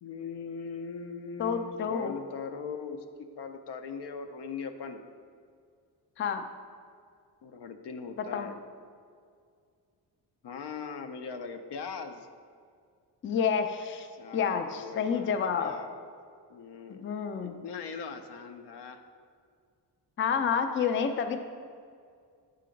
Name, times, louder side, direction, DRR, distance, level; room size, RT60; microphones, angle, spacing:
voice 1, 0.0-5.0 7.4-8.6 10.4-12.3 14.2-16.1 16.5-17.1 17.4-19.0, left 5 dB, 80° left, 7 dB, 0.6 m, -40 dB
voice 2, 1.4-2.1 6.2-6.5 8.2-8.5 13.2-14.1 14.3-15.7 16.9-17.6 20.2-21.4, left 6 dB, 30° left, 7 dB, 0.4 m, -29 dB
6.6 x 3.8 x 5.1 m, 2.2 s
cardioid pair, 105°, 40 cm